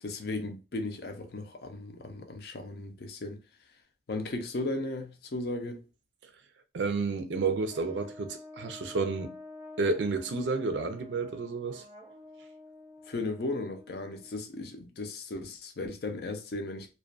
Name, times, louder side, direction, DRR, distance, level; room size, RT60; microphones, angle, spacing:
voice 1, 0.0-3.4 4.1-5.8 13.1-16.9, left 2 dB, 60° left, 0.5 m, -36 dB
voice 2, 6.7-9.4 9.8-11.8, right 4 dB, 90° right, 0.5 m, -30 dB
Brass instrument, 7.7-14.4, left 2 dB, 15° right, 0.6 m, -49 dB
2.3 x 2.2 x 2.4 m
head